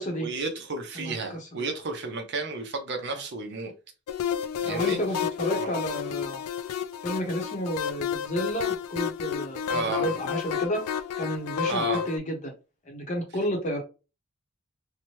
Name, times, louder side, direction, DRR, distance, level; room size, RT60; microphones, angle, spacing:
voice 1, 0.2-3.7 4.6-5.0 5.5-5.7 9.7-10.1 11.7-12.0, right 3 dB, 50° right, 0.6 m, -32 dB
voice 2, 0.9-1.5 4.6-6.4 7.0-10.8 11.2-12.5 12.9-13.8, equal, 35° left, 0.8 m, -31 dB
sound 1, 4.1-12.2, left 9 dB, 90° left, 0.3 m, -31 dB
2.9 x 2.1 x 3.0 m
head